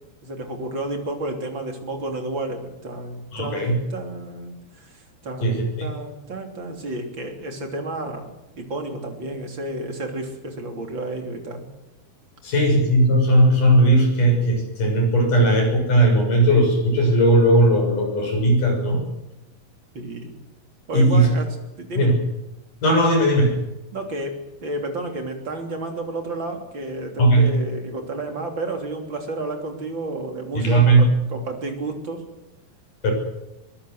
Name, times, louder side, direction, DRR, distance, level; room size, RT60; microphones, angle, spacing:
voice 1, 0.2-11.7 19.9-20.3 20.9-22.2 23.9-32.2, right 2 dB, 35° right, 4 dB, 3.7 m, -31 dB
voice 2, 3.3-3.8 5.4-5.9 12.4-19.0 20.9-21.3 22.0-22.2 22.8-23.6 27.2-27.5 30.6-31.1 33.0-33.1, right 1 dB, 60° left, 2 dB, 8.2 m, -17 dB
23.5 x 19.5 x 8.0 m, 0.94 s
omnidirectional pair, 4.1 m